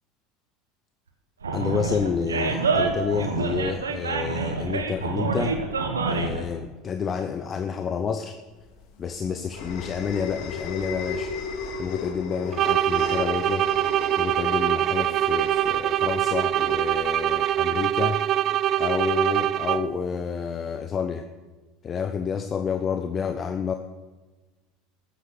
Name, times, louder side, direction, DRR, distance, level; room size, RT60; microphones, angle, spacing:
Animal, 1.4-6.4, right 4 dB, 90° right, 1.3 m, -27 dB
voice 1, 1.5-5.6 6.1-8.3 9.0-11.3 11.8-13.7 14.2-18.2 18.8-21.2 21.8-23.7, left 6 dB, 35° left, 8 dB, 0.9 m, -29 dB
sound 1, 8.6-17.5, left 5 dB, 60° left, 2.1 m, -36 dB
sound 2, 12.5-20.1, right 12 dB, 45° right, 0.4 m, -24 dB
14.0 x 8.3 x 6.6 m, 1.3 s
hypercardioid pair, 80°, 0 cm